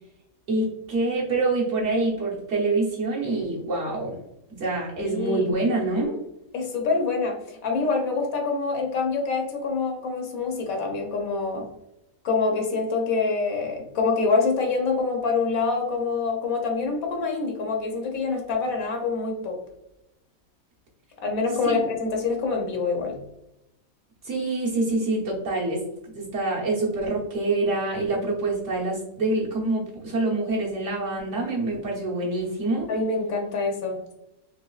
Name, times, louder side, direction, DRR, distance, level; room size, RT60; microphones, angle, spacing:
voice 1, 0.5-4.2 4.5-6.2 21.6-21.8 24.2-25.8 26.1-32.9, right 2 dB, 60° right, -4 dB, 1.4 m, -26 dB
voice 2, 5.0-5.4 6.5-11.7 12.2-19.6 21.2-23.2 32.9-34.1, left 4 dB, 75° left, 1 dB, 1.2 m, -26 dB
4.1 x 3.0 x 2.3 m, 0.86 s
omnidirectional pair, 1.5 m